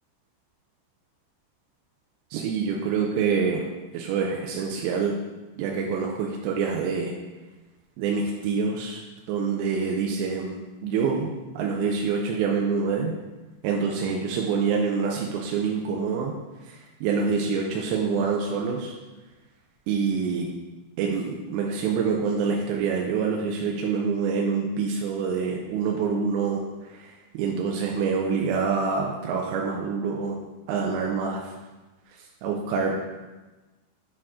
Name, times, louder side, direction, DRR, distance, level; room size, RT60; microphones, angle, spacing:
voice 1, 2.3-3.7 3.9-5.1 5.6-7.1 8.0-9.0 9.3-13.1 13.6-16.3 16.6-18.9 19.9-20.5 21.0-30.4 30.7-31.5 32.2-32.9, right 5 dB, 80° right, -1 dB, 2.7 m, -26 dB
8.8 x 4.6 x 3.6 m, 1.2 s
omnidirectional pair, 5.4 m